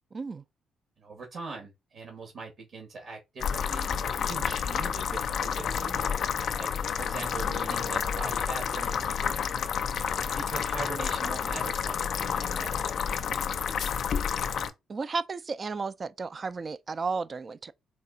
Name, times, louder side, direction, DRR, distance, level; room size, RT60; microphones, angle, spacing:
voice 1, 0.1-0.4 14.9-17.7, right 4 dB, 35° right, 0.4 m, -33 dB
voice 2, 1.0-6.1 6.5-6.7 7.0-9.4 10.3-12.8, right 4 dB, 65° right, 1.7 m, -41 dB
sound 1, 3.4-14.7, left 7 dB, 65° left, 0.5 m, -30 dB
4.3 x 2.4 x 3.9 m
cardioid pair, 90°, 0 cm